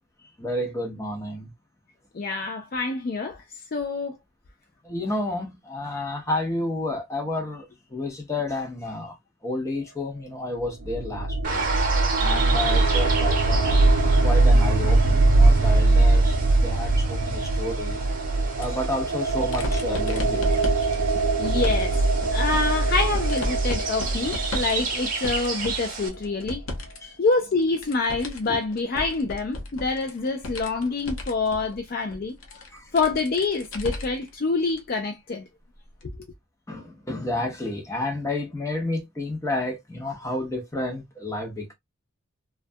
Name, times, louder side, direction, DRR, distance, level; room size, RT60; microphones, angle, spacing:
voice 1, 0.4-1.5 4.8-7.6 7.9-9.2 9.4-11.7 12.2-18.1 18.6-20.6 27.0-27.2 28.5-28.6 32.7-32.9 36.7-41.7, left 2 dB, 15° left, 0.7 m, -31 dB
voice 2, 2.1-3.4 3.7-4.2 21.4-22.0 22.3-26.6 27.2-32.6 32.9-35.4 36.0-36.1, left 3 dB, 45° left, 0.4 m, -26 dB
sound 1, 10.6-25.4, right 2 dB, 65° right, 0.4 m, -22 dB
sound 2, 11.4-26.1, right 4 dB, 40° right, 0.8 m, -32 dB
sound 3, 18.5-27.0 27.3-34.3 34.7-34.8 36.0-36.1, left 1 dB, 75° left, 0.7 m, -35 dB
2.3 x 2.2 x 2.6 m
head